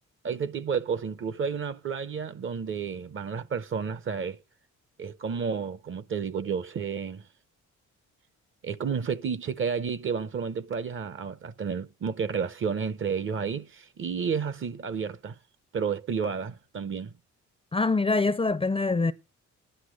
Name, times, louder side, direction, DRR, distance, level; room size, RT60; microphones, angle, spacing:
voice 1, 0.2-4.4 5.0-7.3 8.6-15.4 15.7-17.1, right 6 dB, 40° right, 0.8 m, -31 dB
voice 2, 17.7-19.1, left 3 dB, 20° left, 0.5 m, -24 dB
11.5 x 10.0 x 6.3 m
cardioid pair, 90°, 30 cm